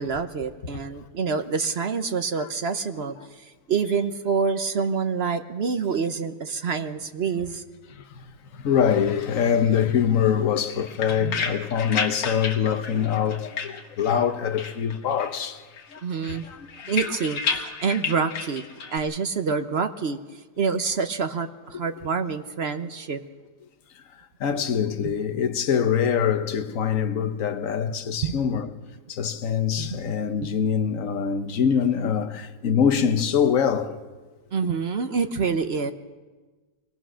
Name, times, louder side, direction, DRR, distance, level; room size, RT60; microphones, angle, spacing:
voice 1, 0.0-7.6 11.2-11.4 16.0-16.5 16.9-18.6 18.9-20.2 20.6-23.2 25.0-25.1 28.2-28.3 29.8-30.1 30.4-30.5 34.5-35.9, right 5 dB, 50° right, 0.8 m, -27 dB
voice 2, 7.9-15.6 15.9-16.9 24.4-28.7 29.1-34.0, left 8 dB, 55° left, 1.4 m, -24 dB
sound 1, 10.6-14.3 14.6-15.4 15.7-19.0, left 5 dB, 80° left, 2.0 m, -32 dB
23.5 x 18.0 x 6.3 m
omnidirectional pair, 1.9 m